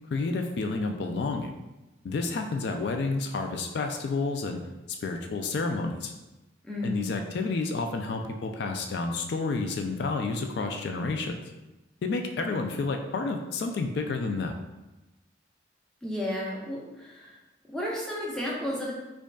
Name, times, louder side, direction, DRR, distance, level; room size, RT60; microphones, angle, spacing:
voice 1, 0.1-1.5 2.0-4.6 5.0-6.1 6.8-11.4 12.0-14.6, left 3 dB, 70° left, 4 dB, 0.3 m, -30 dB
voice 2, 6.6-7.0 16.0-17.3 17.7-18.9, left 1 dB, 5° left, -5 dB, 0.6 m, -33 dB
5.0 x 2.3 x 2.2 m, 1.0 s
head